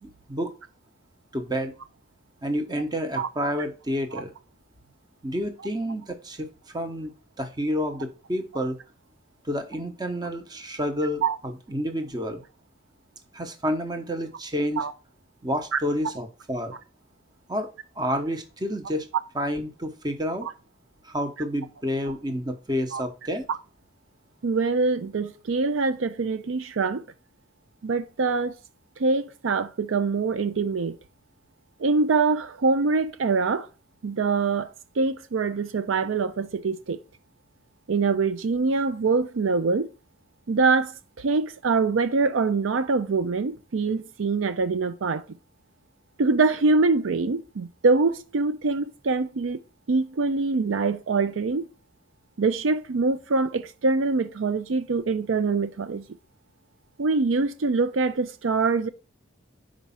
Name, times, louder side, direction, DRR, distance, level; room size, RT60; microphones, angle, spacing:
voice 1, 0.0-0.5 1.3-1.7 2.4-4.3 5.2-6.5 6.7-8.8 9.5-12.4 13.3-14.8 15.4-16.8 17.5-17.7 18.0-19.1 19.3-20.5 21.0-23.5, equal, 20° right, 0.9 m, -29 dB
voice 2, 24.4-27.0 27.8-28.5 29.0-31.0 31.8-33.7 34.0-34.7 35.0-37.0 37.9-39.9 40.5-45.2 46.2-49.6 49.9-51.7 52.4-56.0 57.0-58.9, right 4 dB, 80° right, 0.5 m, -24 dB
5.1 x 4.7 x 5.6 m
head